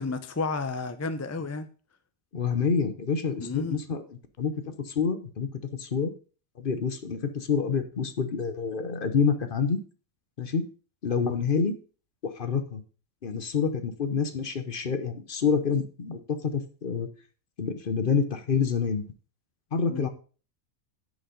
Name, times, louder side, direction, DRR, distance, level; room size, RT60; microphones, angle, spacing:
voice 1, 0.0-1.7 3.4-3.8 19.9-20.1, left 3 dB, 20° left, 0.4 m, -32 dB
voice 2, 2.3-4.0 4.4-4.5 4.9-5.5 5.8-6.1 6.6-9.8 10.4-10.6 11.0-11.8 12.2-12.8 13.2-17.1 17.6-19.1 19.7-20.1, left 6 dB, 45° left, 0.9 m, -27 dB
10.0 x 5.3 x 5.2 m
omnidirectional pair, 1.4 m